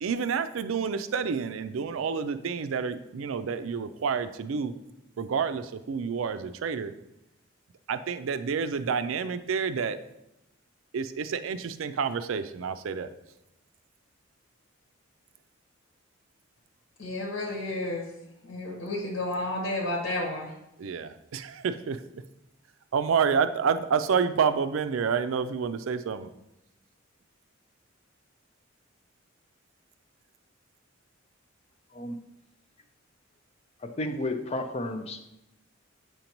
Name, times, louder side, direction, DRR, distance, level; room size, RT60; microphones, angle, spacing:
voice 1, 0.0-4.7 5.2-6.9 7.9-10.0 10.9-13.1 20.8-22.0 22.9-26.3, right 6 dB, 85° right, 11 dB, 0.4 m, -29 dB
voice 2, 17.0-18.1 18.4-20.5, left 1 dB, 85° left, -1 dB, 1.3 m, -31 dB
voice 3, 33.8-35.2, left 1 dB, 30° left, 6 dB, 0.5 m, -32 dB
7.7 x 5.2 x 3.0 m, 0.87 s
head